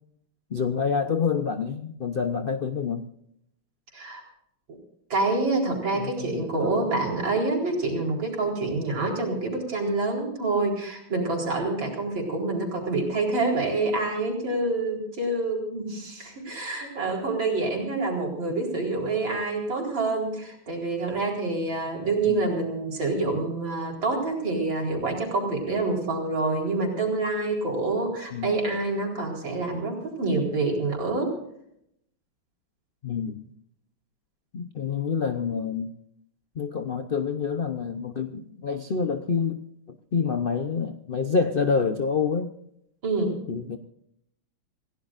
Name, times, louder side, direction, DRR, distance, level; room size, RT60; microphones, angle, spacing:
voice 1, 0.5-3.0 6.0-6.9 22.3-22.5 28.3-28.6 33.0-33.4 34.5-35.9 36.5-42.5 43.5-43.8, left 5 dB, 65° left, 7 dB, 0.5 m, -27 dB
voice 2, 5.1-31.3 43.0-43.4, right 3 dB, 65° right, -1 dB, 4.8 m, -27 dB
27.5 x 16.5 x 2.6 m, 0.75 s
omnidirectional pair, 2.3 m